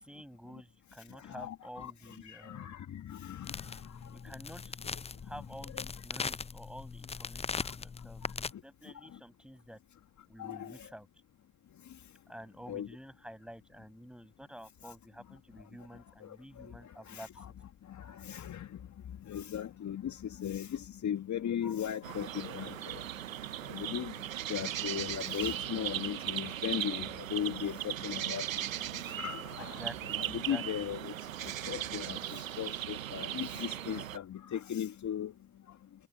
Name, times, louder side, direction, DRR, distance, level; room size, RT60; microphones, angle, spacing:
voice 1, 0.0-2.7 4.1-4.8 5.2-9.8 10.3-11.1 12.3-17.4 29.6-30.9, equal, ahead, 6.3 m, -50 dB
voice 2, 1.1-1.9 2.2-4.3 5.8-5.9 7.6-7.8 8.2-9.2 10.4-10.9 11.8-12.0 12.7-12.9 14.9-15.0 15.9-17.5 17.8-23.1 23.6-29.8 30.2-35.3 35.7-35.8, left 9 dB, 45° left, 2.1 m, -39 dB
sound 1, 3.4-8.5, left 5 dB, 15° left, 0.6 m, -40 dB
sound 2, 22.0-34.2, right 12 dB, 85° right, 0.9 m, -38 dB
figure-of-eight pair, 50°, 39 cm